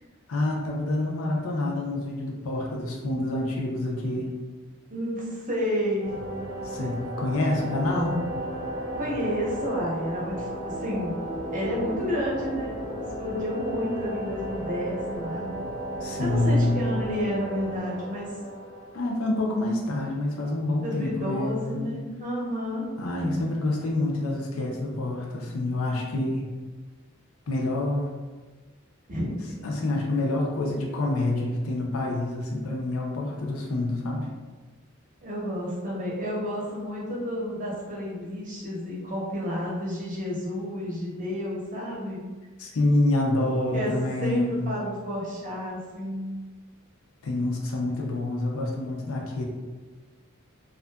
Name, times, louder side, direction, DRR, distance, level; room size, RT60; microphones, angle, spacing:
voice 1, 0.3-4.4 6.6-8.2 16.0-16.8 18.9-21.9 23.0-26.5 27.5-28.1 29.6-34.3 42.6-44.6 47.2-49.4, left 2 dB, 85° left, -1 dB, 0.5 m, -27 dB
voice 2, 4.9-6.2 9.0-11.1 11.5-12.7 13.2-15.5 16.2-18.3 20.8-22.9 29.1-29.6 35.2-42.2 43.7-43.9 44.2-46.3, equal, 40° right, -5 dB, 0.7 m, -30 dB
sound 1, 6.0-19.6, right 1 dB, 15° left, 0.5 m, -34 dB
2.5 x 2.5 x 2.2 m, 1.4 s
head